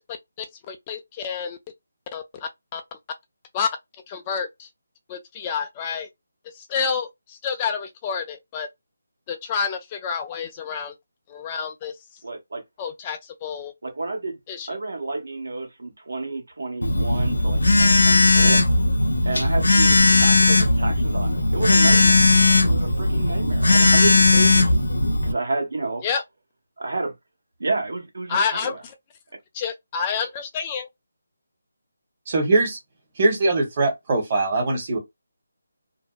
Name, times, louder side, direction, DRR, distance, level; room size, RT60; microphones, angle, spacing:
voice 1, 0.7-1.6 2.1-2.8 3.5-3.7 4.1-4.7 5.1-6.1 6.7-7.1 7.4-8.7 9.3-11.0 11.3-11.9 12.8-13.7 14.5-14.7 26.0-26.2 28.3-28.8 29.5-30.9, left 6 dB, 20° left, 0.3 m, -28 dB
voice 2, 12.2-12.6 13.8-14.4 14.7-18.6 19.2-22.2 22.6-24.7 25.2-26.1 26.8-27.1 27.6-28.8, right 3 dB, 70° right, 1.1 m, -30 dB
Telephone, 16.8-25.3, left 2 dB, 85° left, 0.6 m, -17 dB
voice 3, 32.3-32.8 33.2-35.0, right 2 dB, 35° right, 1.0 m, -21 dB
2.6 x 2.1 x 2.3 m
figure-of-eight pair, 160°, 0 cm